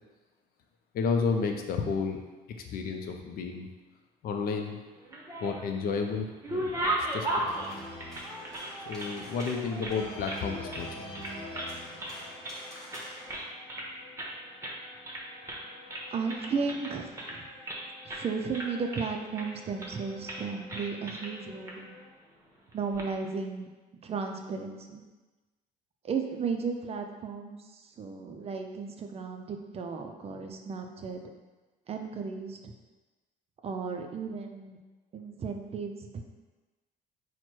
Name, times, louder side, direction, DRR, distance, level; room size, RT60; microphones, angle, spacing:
voice 1, 0.9-2.2 2.6-3.7 4.2-4.8 5.4-7.5 8.8-11.3, left 5 dB, 60° left, 4 dB, 0.5 m, -32 dB
sound 1, 5.0-5.8 6.2-9.1 9.4-10.4 10.7-10.9 11.1-11.7 12.0-12.6 12.9-13.9 14.2-14.3 14.6-14.8 15.0-15.6 15.9-17.8 18.1-18.3 18.5-19.5 19.8-20.0 20.3-20.4 20.7-21.3 21.7-21.8 22.7-23.1, right 1 dB, 15° right, 0.9 m, -35 dB
Wind instrument woodwind instrument, 6.6-22.1, left 2 dB, 30° left, 1.2 m, -54 dB
sound 2, 7.4-13.4, equal, ahead, 1.3 m, -44 dB
voice 2, 16.1-17.4 18.1-21.9 22.7-23.7 24.0-25.0 26.0-31.2 31.9-32.7 33.6-34.8 35.1-36.2, right 5 dB, 35° right, 4 dB, 0.4 m, -35 dB
4.4 x 2.2 x 4.4 m, 1.2 s
cardioid pair, 110°, 17 cm